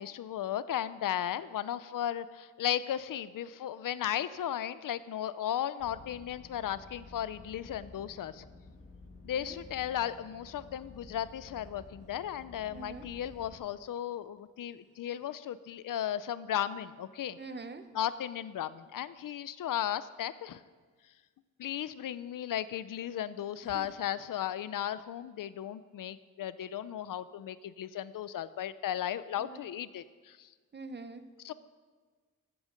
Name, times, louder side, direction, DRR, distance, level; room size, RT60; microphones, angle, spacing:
voice 1, 0.0-8.5 9.2-17.4 17.9-20.6 21.6-30.5 31.4-31.5, left 10 dB, 90° left, 15 dB, 0.6 m, -35 dB
sound 1, 5.8-13.5, left 3 dB, 45° left, 1.8 m, -52 dB
voice 2, 12.7-13.1 17.4-17.9 23.6-23.9 29.4-29.6 30.7-31.3, right 3 dB, 35° right, 10 dB, 0.8 m, -44 dB
14.5 x 8.7 x 6.6 m, 1.4 s
wide cardioid pair, 150°, 32 cm